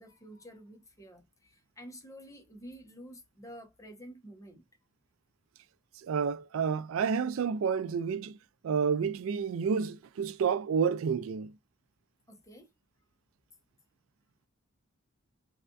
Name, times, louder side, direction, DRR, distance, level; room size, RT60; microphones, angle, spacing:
voice 1, 0.0-4.7 12.3-12.7, equal, 15° left, 0.9 m, -50 dB
voice 2, 6.0-8.4 8.6-11.5, right 6 dB, 75° right, 0.4 m, -30 dB
3.4 x 3.3 x 2.5 m
head